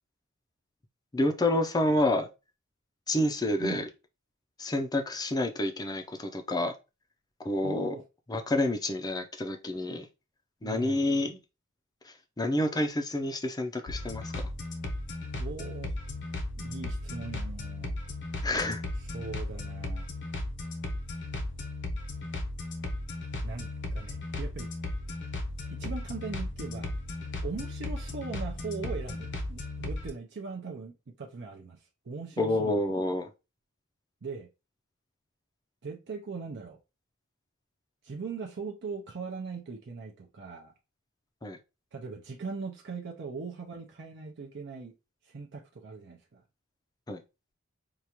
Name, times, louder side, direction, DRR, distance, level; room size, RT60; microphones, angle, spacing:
voice 1, 1.1-2.3 3.1-3.9 4.6-6.7 7.4-7.9 8.3-10.1 10.6-11.4 12.0-14.5 18.4-18.8 32.4-33.3 41.4-41.6 47.1-47.2, left 1 dB, 20° left, 0.5 m, -29 dB
voice 2, 7.6-8.0 10.6-11.1 15.4-15.9 16.6-17.9 19.1-20.1 23.4-24.7 25.7-26.9 27.4-33.1 34.2-34.5 35.8-36.8 38.0-40.7 41.9-44.9 45.2-46.4, right 4 dB, 55° right, 0.5 m, -40 dB
sound 1, 13.9-30.1, left 2 dB, 55° left, 0.8 m, -36 dB
4.7 x 2.4 x 2.9 m
head